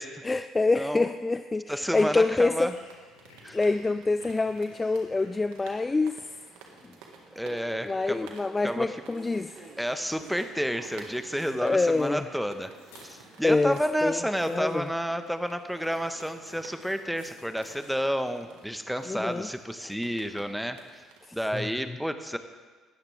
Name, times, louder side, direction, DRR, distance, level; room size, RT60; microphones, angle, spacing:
voice 1, 0.2-2.7 3.5-6.2 7.8-9.7 11.6-12.2 13.4-14.9 19.1-19.5 19.8-19.9 21.5-21.7, left 3 dB, 20° left, 11 dB, 0.4 m, -26 dB
voice 2, 0.7-1.1 1.7-2.7 3.4-3.6 7.3-8.3 8.6-9.0 9.8-12.7 13.0-21.0 21.3-22.4, equal, ahead, 9 dB, 1.2 m, -30 dB
sound 1, 1.6-6.9 9.0-10.4 10.8-14.8 15.7-17.9, left 3 dB, 85° left, 4.0 m, -56 dB
sound 2, 1.9-21.7, right 5 dB, 75° right, 1.8 m, -54 dB
sound 3, 6.4-18.7, right 3 dB, 35° right, 3.5 m, -52 dB
19.0 x 13.0 x 3.5 m, 1.4 s
hypercardioid pair, 55°, 0 cm